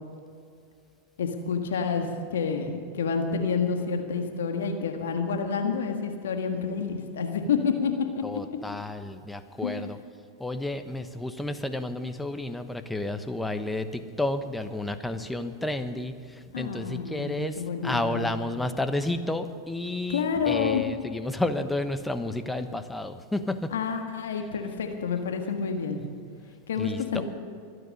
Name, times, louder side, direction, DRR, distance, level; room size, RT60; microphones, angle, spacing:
voice 1, 1.2-8.2 9.6-9.8 16.5-18.3 20.1-20.8 23.7-26.0 26.7-27.2, left 6 dB, 75° left, 4 dB, 1.6 m, -29 dB
voice 2, 8.2-10.0 10.4-23.7 26.8-27.2, left 2 dB, 5° left, 9 dB, 1.1 m, -31 dB
24.5 x 9.7 x 5.4 m, 2.3 s
hypercardioid pair, 95°, 0 cm